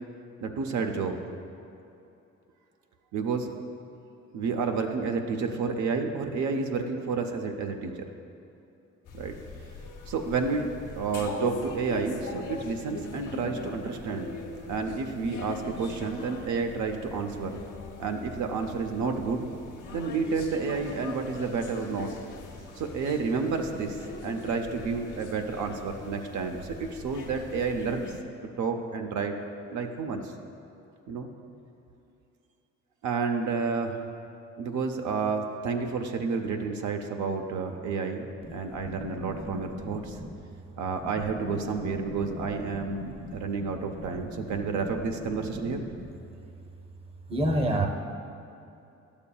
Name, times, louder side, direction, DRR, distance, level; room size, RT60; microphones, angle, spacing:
voice 1, 0.4-1.2 3.1-3.5 4.3-8.1 9.1-9.4 10.1-10.7 10.9-14.3 14.7-17.6 18.0-19.5 19.9-22.1 22.6-24.0 24.2-28.1 28.6-29.3 29.7-30.3 31.1-31.3 33.0-34.0 34.6-38.3 38.5-40.2 40.8-45.8, right 4 dB, 70° right, 4 dB, 0.6 m, -30 dB
sound 1, 9.0-28.2, left 3 dB, 80° left, 0.9 m, -41 dB
voice 2, 38.8-40.4 41.0-41.1 41.6-43.7 44.0-44.9 45.3-45.4 45.7-46.1 47.3-47.9, right 1 dB, 20° right, 4 dB, 0.7 m, -34 dB
11.0 x 7.0 x 2.3 m, 2.8 s
cardioid pair, 90°, 30 cm